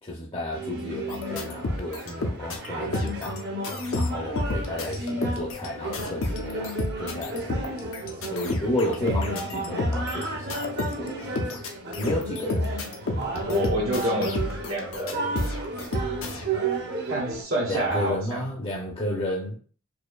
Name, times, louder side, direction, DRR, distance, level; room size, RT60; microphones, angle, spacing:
voice 1, 0.0-3.4 3.9-7.8 8.3-11.3 12.0-12.8 17.7-19.6, left 1 dB, 25° left, -3 dB, 0.5 m, -32 dB
sound 1, 0.5-17.4, right 2 dB, 50° right, 0.7 m, -33 dB
sound 2, 1.1-2.7 2.9-3.4 3.6-16.5, left 2 dB, 80° left, 0.6 m, -31 dB
voice 2, 13.5-15.3 17.1-18.5 19.1-19.2, equal, 80° right, -4 dB, 1.0 m, -28 dB
4.5 x 2.6 x 2.3 m, 0.41 s
head